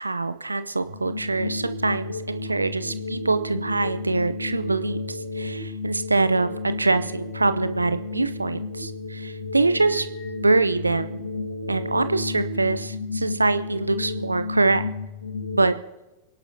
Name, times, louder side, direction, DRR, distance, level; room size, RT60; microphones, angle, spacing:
voice 1, 0.0-10.1 10.4-11.3 11.7-14.8 15.5-15.7, right 3 dB, 80° right, 12 dB, 0.6 m, -24 dB
sound 1, 0.8-15.7, left 3 dB, 70° left, 1.9 m, -32 dB
30.0 x 11.0 x 2.8 m, 1.0 s
figure-of-eight pair, 90°, 0 cm